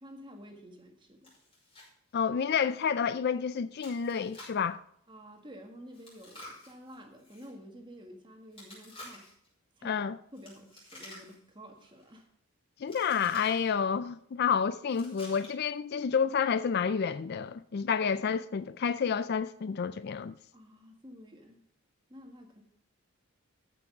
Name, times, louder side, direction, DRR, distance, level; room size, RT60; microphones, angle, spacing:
voice 1, 0.0-1.3 5.1-9.3 9.8-10.1 10.3-12.3 20.5-21.6 22.1-22.6, equal, 20° right, 1.6 m, -50 dB
Chewing mastication, 1.2-1.9 2.2-2.3 2.8-2.9 3.8-4.7 5.9-7.5 8.5-9.5 10.3-11.5 11.8-12.2 12.9-13.7 14.9-15.7, left 1 dB, 25° left, 5.4 m, -50 dB
voice 2, 2.1-4.8 9.8-10.2 12.8-20.4, left 6 dB, 45° left, 0.3 m, -29 dB
14.0 x 6.0 x 4.9 m
head